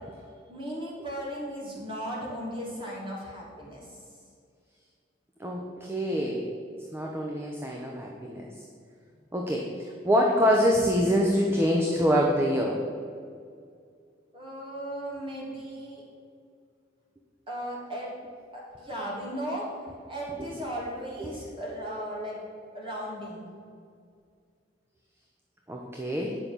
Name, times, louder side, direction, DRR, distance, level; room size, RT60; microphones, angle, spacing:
voice 1, 0.5-4.0 14.3-16.0 17.5-18.1 18.5-19.7 20.1-22.4 22.7-23.4, equal, 30° right, -4 dB, 2.8 m, -36 dB
voice 2, 5.4-6.5 6.9-8.5 9.3-12.8 20.4-20.5 21.2-21.3 25.7-26.4, equal, 15° right, -1 dB, 0.8 m, -25 dB
9.3 x 5.7 x 6.9 m, 2.2 s
head